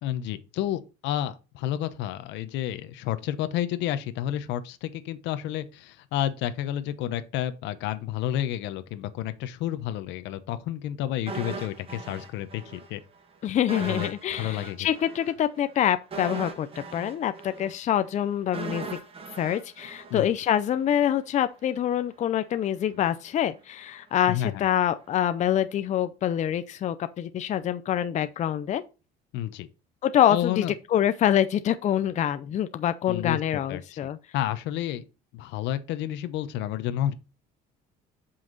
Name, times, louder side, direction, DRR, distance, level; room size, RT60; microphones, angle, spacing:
voice 1, 0.0-13.0 13.8-14.8 20.1-20.3 24.3-24.6 29.3-29.7 30.3-30.7 33.1-33.8 34.3-35.0 35.3-37.1, left 12 dB, 75° left, 0.9 m, -30 dB
sound 1, 11.3-12.9 13.2-13.3 13.7-20.8 21.1-21.2, right 4 dB, 30° right, 1.6 m, -39 dB
voice 2, 13.4-19.0 19.4-28.8 30.0-30.6 30.9-34.2, left 10 dB, 40° left, 0.6 m, -25 dB
7.8 x 5.8 x 4.0 m
cardioid pair, 130°, 19 cm